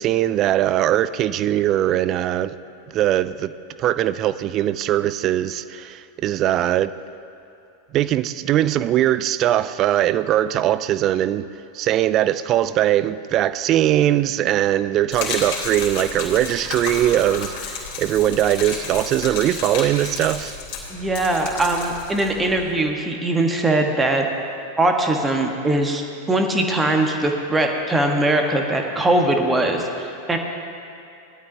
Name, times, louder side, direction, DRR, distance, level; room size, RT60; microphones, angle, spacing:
voice 1, 0.0-2.6 2.9-3.5 3.8-6.9 7.9-11.5 11.7-20.6, right 12 dB, 35° right, 0.4 m, -20 dB
Gurgling / Liquid, 15.1-22.7, left 5 dB, 45° left, 3.3 m, -32 dB
voice 2, 20.9-24.3 24.8-26.0 26.3-30.4, right 2 dB, 10° right, 1.4 m, -21 dB
19.5 x 12.0 x 2.8 m
figure-of-eight pair, 90°, 0 cm